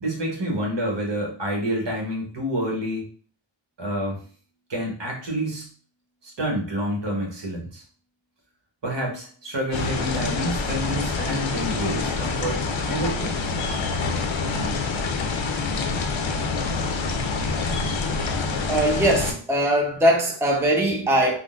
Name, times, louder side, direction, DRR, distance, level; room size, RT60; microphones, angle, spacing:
voice 1, 0.0-3.0 3.8-4.2 4.7-5.7 6.2-7.8 8.8-13.3, equal, 60° right, 1.1 m, -28 dB
sound 1, 9.7-19.3, left 4 dB, 75° left, 0.5 m, -26 dB
voice 2, 18.7-21.4, right 1 dB, 5° right, 0.6 m, -21 dB
3.6 x 2.1 x 2.4 m
wide cardioid pair, 55°, 47 cm